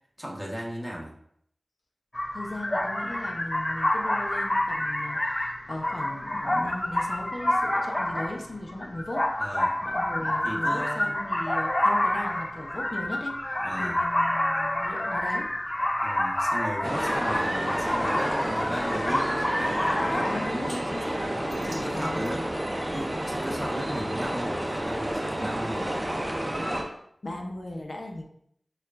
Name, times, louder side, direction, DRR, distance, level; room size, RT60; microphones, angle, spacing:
voice 1, 0.2-1.1 9.4-9.8 10.2-11.1 13.6-14.0 16.0-20.3 21.2-22.5 22.9-26.2, equal, 5° right, -3 dB, 1.1 m, -36 dB
sound 1, 2.1-20.5, left 1 dB, 30° left, 0.4 m, -28 dB
voice 2, 2.3-9.3 9.8-15.5 20.2-21.2 21.7-22.4 27.2-28.2, left 1 dB, 65° left, 1 dB, 0.7 m, -37 dB
sound 2, 16.8-26.8, right 1 dB, 30° right, 0.6 m, -30 dB
sound 3, 20.7-20.8 21.5-23.7, right 1 dB, 65° right, 0.7 m, -43 dB
6.4 x 2.4 x 2.5 m, 0.69 s
wide cardioid pair, 45°, 0 cm